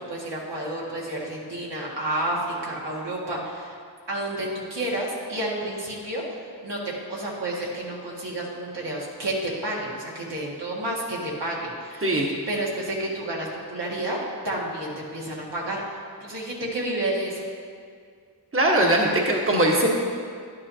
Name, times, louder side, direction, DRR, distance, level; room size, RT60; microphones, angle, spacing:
voice 1, 0.0-3.8 4.1-6.8 7.1-14.2 14.4-17.5, right 1 dB, 85° right, -5 dB, 1.9 m, -30 dB
voice 2, 18.5-19.9, right 1 dB, 30° right, -1 dB, 1.2 m, -20 dB
11.0 x 9.3 x 2.8 m, 2.1 s
wide cardioid pair, 45°, 41 cm